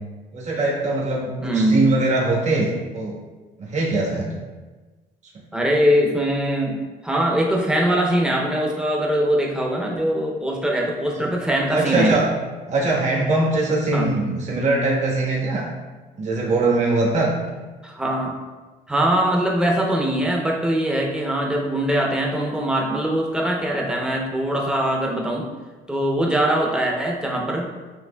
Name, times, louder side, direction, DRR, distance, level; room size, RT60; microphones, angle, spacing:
voice 1, 0.3-3.1 3.6-4.3 11.1-11.3 11.7-12.3 12.7-15.7 16.2-17.3, right 2 dB, 45° right, -4 dB, 1.3 m, -21 dB
voice 2, 1.4-1.9 5.5-6.8 7.0-12.2 13.9-14.1 17.8-18.3 18.9-25.5 25.9-27.7, right 1 dB, 5° right, -1 dB, 0.7 m, -22 dB
7.6 x 2.9 x 2.3 m, 1.3 s
cardioid pair, 110°, 17 cm